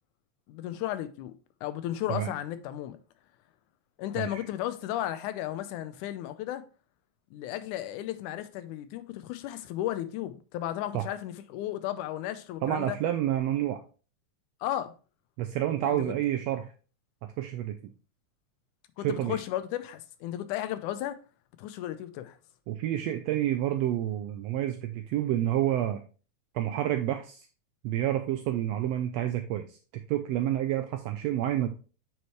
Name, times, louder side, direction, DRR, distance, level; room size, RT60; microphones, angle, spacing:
voice 1, 0.5-1.3 1.6-3.0 4.0-6.7 7.3-13.0 14.6-14.9 15.8-16.1 19.0-21.2 21.6-22.4, left 13 dB, 90° left, 2.2 m, -34 dB
voice 2, 12.6-13.8 15.4-16.7 17.2-17.8 19.0-19.4 22.7-26.0 26.5-27.5 27.8-31.7, right 12 dB, 80° right, 1.5 m, -29 dB
8.3 x 4.7 x 3.1 m
omnidirectional pair, 3.4 m